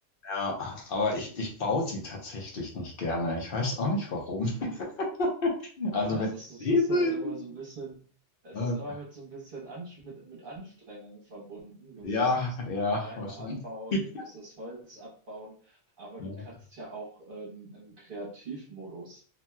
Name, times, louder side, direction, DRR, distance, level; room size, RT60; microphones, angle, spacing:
voice 1, 0.2-6.3 6.6-7.3 8.5-8.8 12.0-13.6 13.9-14.0 16.2-16.4, left 2 dB, 55° left, 0 dB, 0.9 m, -29 dB
voice 2, 6.0-8.1 8.4-12.3 13.0-19.2, right 2 dB, 50° right, -4 dB, 1.1 m, -43 dB
2.8 x 2.7 x 2.2 m, 0.42 s
omnidirectional pair, 1.2 m